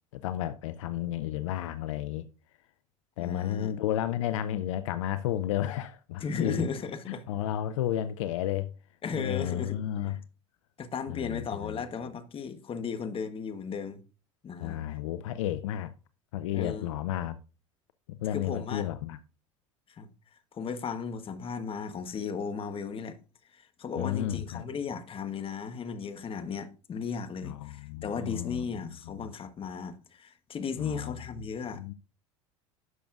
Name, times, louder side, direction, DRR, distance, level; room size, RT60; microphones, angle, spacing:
voice 1, 0.1-2.3 3.2-6.6 7.1-8.7 9.1-10.2 11.1-11.8 14.6-15.9 16.3-17.4 18.2-19.2 24.0-24.6 27.4-29.1 30.8-31.2 31.7-31.9, left 12 dB, 75° left, 0.5 m, -32 dB
voice 2, 3.2-3.7 6.2-7.2 9.0-10.2 10.8-14.0 14.4-14.8 16.5-16.9 18.3-18.9 19.9-20.1 20.5-23.2 23.5-31.8, left 6 dB, 35° left, 1.3 m, -36 dB
11.0 x 6.7 x 2.5 m
hypercardioid pair, 75°, 16 cm